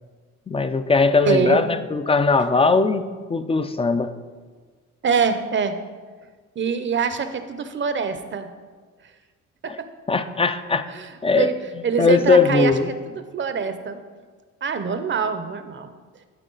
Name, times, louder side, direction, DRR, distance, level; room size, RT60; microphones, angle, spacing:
voice 1, 0.5-4.1 9.7-9.8 10.1-10.8 11.2-11.5 12.0-12.9, left 4 dB, 20° left, 11 dB, 0.4 m, -19 dB
voice 2, 1.2-1.7 5.0-5.8 6.6-8.5 9.6-9.9 10.9-11.5 11.8-12.7 13.0-14.0 14.6-15.9, right 6 dB, 40° right, 10 dB, 0.6 m, -24 dB
12.0 x 4.4 x 3.9 m, 1.5 s
cardioid pair, 90°, 30 cm